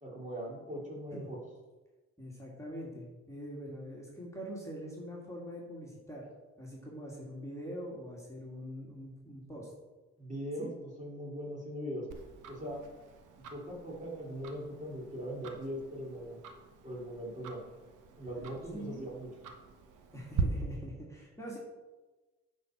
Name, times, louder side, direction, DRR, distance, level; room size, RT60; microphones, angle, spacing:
voice 1, 0.0-1.4 10.2-12.1 12.5-12.8 13.5-16.4 16.8-17.6 18.2-19.3, equal, 25° right, -3 dB, 3.0 m, -40 dB
voice 2, 2.2-6.3 6.6-9.7 10.6-10.7 18.7-19.1 20.1-21.6, equal, 10° left, -4 dB, 2.2 m, -43 dB
Tick-tock, 12.1-20.4, right 8 dB, 85° right, 1.1 m, -44 dB
9.2 x 4.4 x 5.9 m, 1.2 s
cardioid pair, 90°, 30 cm